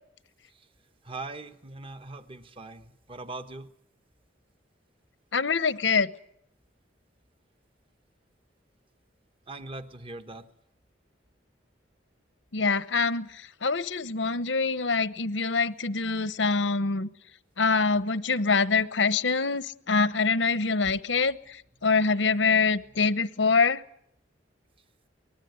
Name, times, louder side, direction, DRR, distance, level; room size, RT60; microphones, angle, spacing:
voice 1, 1.0-3.7 9.5-10.5 21.8-21.9, right 2 dB, 30° right, 9 dB, 1.3 m, -41 dB
voice 2, 5.3-6.1 12.5-13.3 13.6-17.1 17.6-21.4 21.8-23.8, left 4 dB, 85° left, 14 dB, 1.0 m, -24 dB
24.0 x 20.0 x 9.4 m, 0.72 s
head